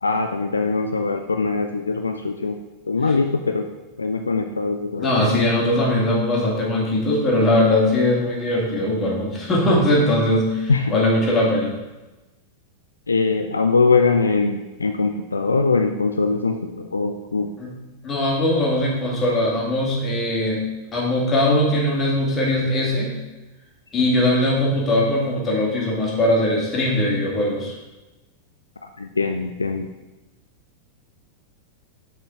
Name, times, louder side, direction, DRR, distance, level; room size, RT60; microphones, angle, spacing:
voice 1, 0.0-2.6 2.9-3.7 4.0-5.1 10.7-10.9 13.1-17.5 24.2-24.3 29.0-29.9, left 4 dB, 75° left, 5 dB, 0.4 m, -22 dB
voice 2, 5.0-11.8 17.6-17.8 18.0-20.6 20.9-23.1 23.9-27.7, left 1 dB, 20° left, -3 dB, 2.3 m, -20 dB
6.4 x 4.2 x 5.6 m, 1.1 s
figure-of-eight pair, 90°, 0 cm